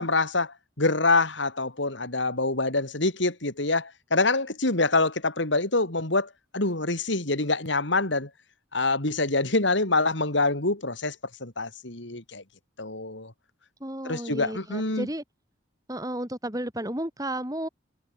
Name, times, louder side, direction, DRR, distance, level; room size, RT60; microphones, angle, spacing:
voice 1, 0.0-8.3 8.7-11.2 11.4-12.4 12.8-13.3 14.1-15.1, left 3 dB, 70° left, 3.4 m, -25 dB
voice 2, 13.8-15.2 15.9-17.7, right 1 dB, 20° right, 5.9 m, -33 dB
head